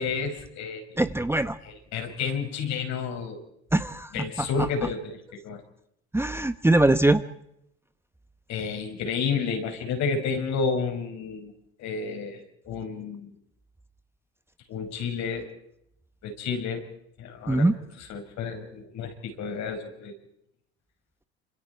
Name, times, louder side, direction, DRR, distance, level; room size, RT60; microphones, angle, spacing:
voice 1, 0.0-1.0 1.6-3.4 4.1-5.6 8.5-11.5 11.8-13.3 14.7-15.5 16.2-16.8 17.2-17.7 18.0-20.1, left 5 dB, 60° left, 5 dB, 5.6 m, -31 dB
voice 2, 1.0-1.6 3.7-4.5 6.1-7.2 17.5-17.7, right 2 dB, 5° right, 11 dB, 1.1 m, -22 dB
29.0 x 26.5 x 4.6 m, 0.78 s
hypercardioid pair, 70°, 32 cm